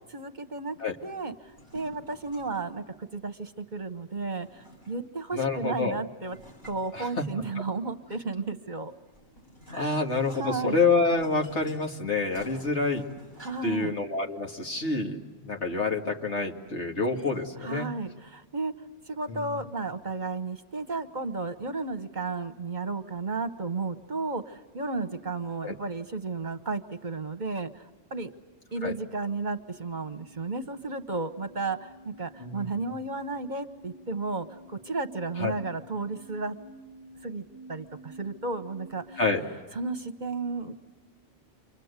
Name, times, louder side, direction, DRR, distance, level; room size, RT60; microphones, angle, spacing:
voice 1, 0.1-6.4 6.6-8.9 9.7-10.0 10.3-10.8 13.4-13.9 17.6-18.7 19.1-28.3 28.7-36.6 37.2-39.2 39.7-40.9, right 3 dB, 40° right, 9 dB, 1.1 m, -33 dB
sound 1, 1.4-2.8 4.2-5.2 6.2-7.6 8.8-13.9, equal, 40° left, 7.4 m, -51 dB
voice 2, 5.3-6.0 6.9-7.2 9.7-13.0 13.6-17.9 19.3-19.5 25.6-25.7 28.8-28.9 32.4-32.7 35.4-35.5 39.2-39.4, left 3 dB, 70° left, 1 dB, 2.4 m, -27 dB
sound 2, 29.7-39.3, right 1 dB, 85° left, 3.0 m, -50 dB
30.0 x 24.5 x 8.1 m, 1.3 s
omnidirectional pair, 1.2 m